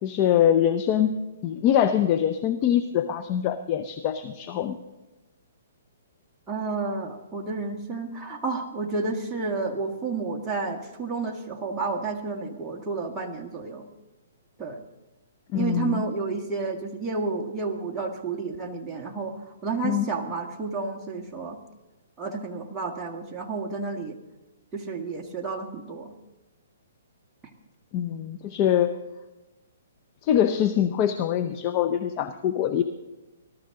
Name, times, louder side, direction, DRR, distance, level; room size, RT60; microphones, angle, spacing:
voice 1, 0.0-4.8 15.5-16.0 19.8-20.1 27.9-28.9 30.2-32.8, left 10 dB, 35° left, 9 dB, 0.7 m, -24 dB
voice 2, 6.5-13.9 14.6-14.8 15.5-21.6 22.2-24.2 24.7-26.1, right 4 dB, 10° right, -1 dB, 1.7 m, -31 dB
19.5 x 12.5 x 3.8 m, 1.1 s
hypercardioid pair, 140°, 0 cm